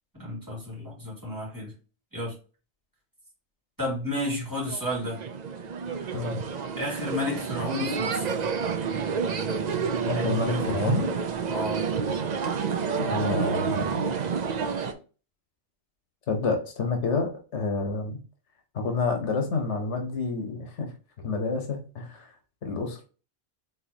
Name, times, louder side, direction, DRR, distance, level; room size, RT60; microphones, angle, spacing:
voice 1, 0.2-1.7 2.1-2.3 3.8-5.2 6.7-8.4 11.5-11.9, left 1 dB, 15° right, -6 dB, 2.7 m, -32 dB
sound 1, 4.7-14.9, right 6 dB, 50° right, 0.6 m, -29 dB
voice 2, 10.1-11.1 13.0-14.1 16.3-18.2 18.7-20.9 21.2-22.2 22.6-23.0, left 4 dB, 80° left, 4 dB, 1.3 m, -28 dB
4.6 x 4.0 x 2.8 m, 0.36 s
omnidirectional pair, 1.2 m